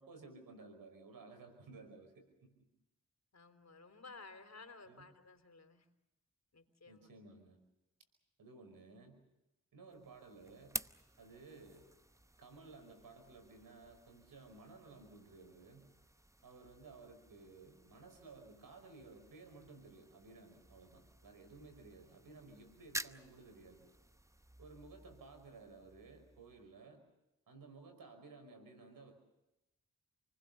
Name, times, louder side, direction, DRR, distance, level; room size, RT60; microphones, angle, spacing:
voice 1, 0.0-2.5 4.8-5.1 6.9-7.6 8.4-9.2 9.7-10.8 11.2-11.9 12.4-15.9 16.4-23.9 24.6-27.0 27.5-29.1, right 3 dB, 90° right, 6 dB, 5.3 m, -56 dB
voice 2, 3.3-5.9 6.5-7.1, left 3 dB, 55° left, 8 dB, 3.6 m, -55 dB
sound 1, 9.9-26.8, right 1 dB, 10° right, 0.8 m, -52 dB
28.5 x 20.0 x 6.9 m, 0.94 s
cardioid pair, 40°, 33 cm